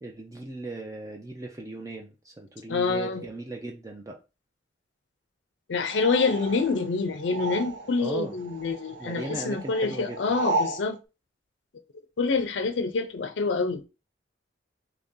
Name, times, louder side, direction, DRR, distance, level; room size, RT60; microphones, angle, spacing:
voice 1, 0.0-4.2 8.0-8.4 9.0-10.2, right 2 dB, 20° right, 0.5 m, -37 dB
voice 2, 2.7-3.3 5.7-11.0 12.2-13.8, left 4 dB, 85° left, 0.5 m, -26 dB
sound 1, 5.9-8.1 8.4-10.9, right 3 dB, 75° right, 0.6 m, -33 dB
3.2 x 2.7 x 3.6 m
head